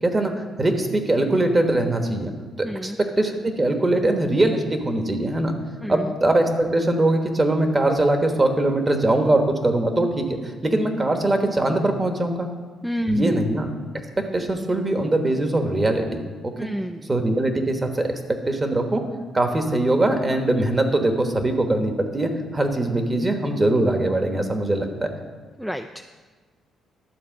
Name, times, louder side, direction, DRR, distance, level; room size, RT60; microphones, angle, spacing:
voice 1, 0.0-2.3 2.6-5.6 5.9-12.5 13.1-13.7 14.2-16.7 17.1-19.1 19.3-25.1, right 1 dB, 25° right, 5 dB, 1.3 m, -22 dB
voice 2, 2.6-3.0 5.8-6.1 12.8-13.4 16.6-17.1 25.6-26.0, equal, ahead, 7 dB, 0.4 m, -28 dB
12.0 x 4.3 x 7.4 m, 1.4 s
cardioid pair, 90°, 0 cm